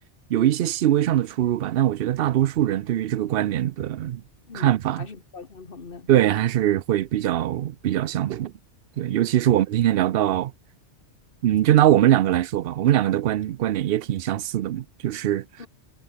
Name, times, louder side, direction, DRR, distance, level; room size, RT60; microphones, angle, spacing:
voice 1, 0.3-4.2 4.5-5.1 6.1-8.5 9.0-10.5 11.4-15.4, right 12 dB, 60° right, 0.7 m, -22 dB
voice 2, 4.5-6.1 9.5-9.6 15.6-15.7, left 4 dB, 50° left, 1.9 m, -41 dB
omnidirectional pair, 1.2 m